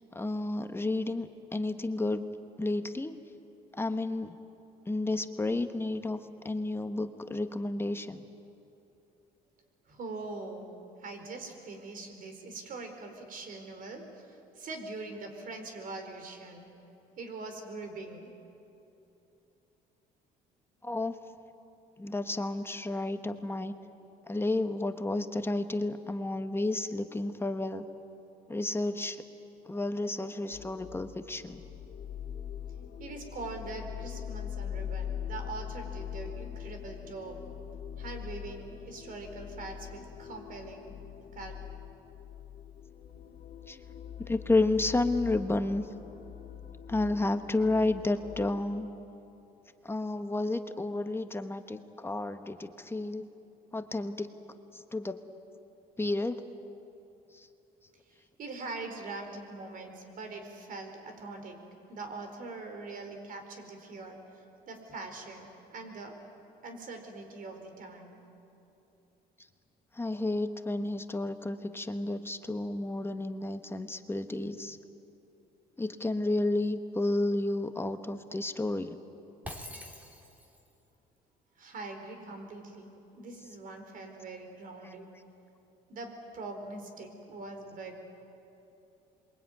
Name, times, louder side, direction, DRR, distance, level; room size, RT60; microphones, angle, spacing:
voice 1, 0.1-2.2 2.6-3.2 3.8-4.4 4.9-6.2 6.4-8.2 20.8-21.1 22.0-23.7 24.3-27.9 28.5-29.2 29.7-31.6 43.7-43.8 44.3-45.8 46.9-48.9 49.8-53.3 53.7-54.3 54.7-55.2 56.0-56.4 70.0-74.8 75.8-78.9 84.8-84.9, left 2 dB, 15° left, 8 dB, 1.2 m, -31 dB
voice 2, 9.9-10.7 11.0-16.7 17.2-18.3 33.0-37.4 38.0-41.0 41.3-41.6 58.4-61.6 61.9-64.2 64.7-66.2 66.6-68.2 81.6-82.9 83.1-85.1 85.9-88.0, right 3 dB, 55° right, 5 dB, 4.6 m, -42 dB
sound 1, 30.5-48.7, left 9 dB, 60° left, 2.6 m, -42 dB
Shatter, 79.4-80.7, left 1 dB, 10° right, 3.3 m, -44 dB
27.0 x 23.0 x 9.4 m, 2.9 s
cardioid pair, 110°, 17 cm